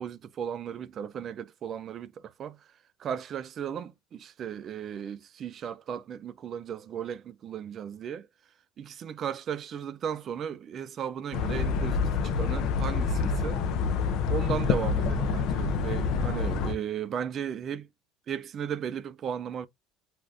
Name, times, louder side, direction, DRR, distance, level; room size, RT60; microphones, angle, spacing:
voice 1, 0.0-2.6 3.0-8.3 8.8-13.6 14.3-17.9 18.3-19.7, right 8 dB, 45° right, 0.4 m, -35 dB
sound 1, 11.3-16.7, left 5 dB, 65° left, 0.5 m, -27 dB
2.5 x 2.4 x 3.3 m
supercardioid pair, 110°, 0 cm